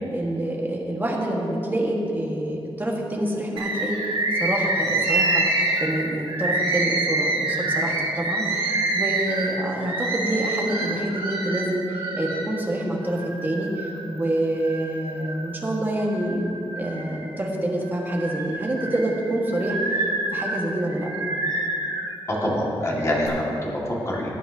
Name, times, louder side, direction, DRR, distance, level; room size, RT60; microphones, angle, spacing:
voice 1, 0.1-4.0 4.4-5.4 5.8-20.0 20.3-21.1, right 1 dB, 20° right, -2 dB, 1.5 m, -27 dB
Bird, 3.6-12.5 13.0-14.0 14.5-15.5 16.0-17.4 17.8-22.1 22.8-23.3, right 2 dB, 75° right, 2.3 m, -27 dB
voice 2, 22.3-24.3, left 1 dB, 30° left, -4 dB, 1.9 m, -25 dB
18.0 x 8.9 x 2.8 m, 2.8 s
wide cardioid pair, 150°, 10 cm